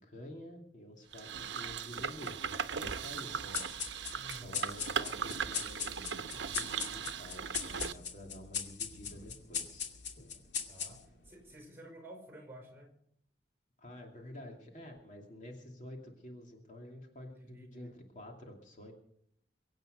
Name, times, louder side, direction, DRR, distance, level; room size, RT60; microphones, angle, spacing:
voice 1, 0.0-3.6 4.4-10.0 13.8-18.9, left 1 dB, 45° left, 1 dB, 2.6 m, -49 dB
sound 1, 1.1-7.9, right 6 dB, 85° right, 0.8 m, -38 dB
sound 2, 3.5-11.3, left 7 dB, 75° left, 2.4 m, -40 dB
voice 2, 4.1-4.6 10.7-12.9 17.3-17.9, right 1 dB, 15° right, 4 dB, 5.2 m, -52 dB
23.5 x 9.1 x 6.6 m, 0.72 s
head